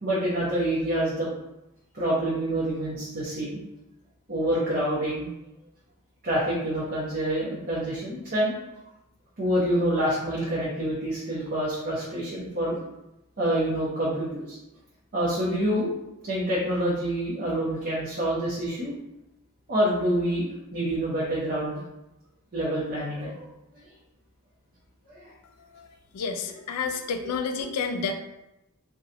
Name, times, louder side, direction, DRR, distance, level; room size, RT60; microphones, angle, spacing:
voice 1, 0.0-1.3 1.9-3.6 4.3-5.3 6.2-8.5 9.4-12.8 13.4-14.6 15.1-15.9 16.2-18.9 19.7-20.5 20.7-21.8 22.5-23.5 25.1-25.3, right 1 dB, 45° right, -8 dB, 0.8 m, -27 dB
voice 2, 26.1-28.1, left 5 dB, 85° left, 5 dB, 0.4 m, -30 dB
2.9 x 2.3 x 3.8 m, 0.90 s
head